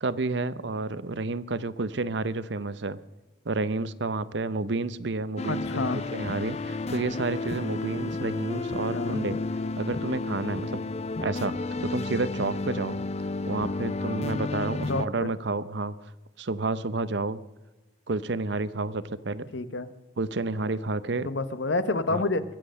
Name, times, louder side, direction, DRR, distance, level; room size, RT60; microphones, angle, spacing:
voice 1, 0.0-3.0 3.4-9.4 9.8-10.8 11.2-11.5 11.8-13.0 13.5-15.9 16.4-17.4 18.1-19.5 20.2-21.3 22.1-22.2, right 3 dB, 60° right, 15 dB, 0.7 m, -30 dB
sound 1, 5.4-15.1, left 3 dB, 35° left, 0.5 m, -32 dB
voice 2, 5.5-6.0 8.9-9.2 14.9-15.3 19.5-19.9 21.2-22.4, left 3 dB, 70° left, 13 dB, 1.0 m, -28 dB
22.5 x 7.7 x 6.4 m, 1.1 s
head